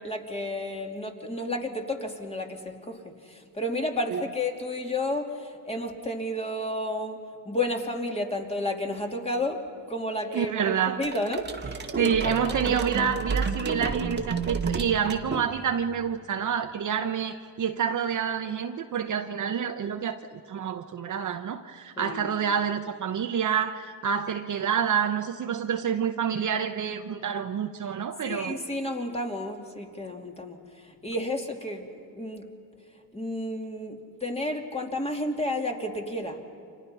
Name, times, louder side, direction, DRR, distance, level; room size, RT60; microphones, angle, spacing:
voice 1, 0.0-7.2 7.4-9.6 9.9-13.0 22.0-22.4 28.2-31.9 32.1-32.5 33.1-36.4, left 1 dB, 15° left, 2 dB, 2.8 m, -32 dB
voice 2, 10.3-11.0 12.0-28.6, right 7 dB, 40° right, 7 dB, 1.0 m, -28 dB
sound 1, 11.0-15.9, right 4 dB, 25° right, 1.8 m, -31 dB
29.5 x 26.0 x 5.7 m, 2.6 s
cardioid pair, 115°, 45 cm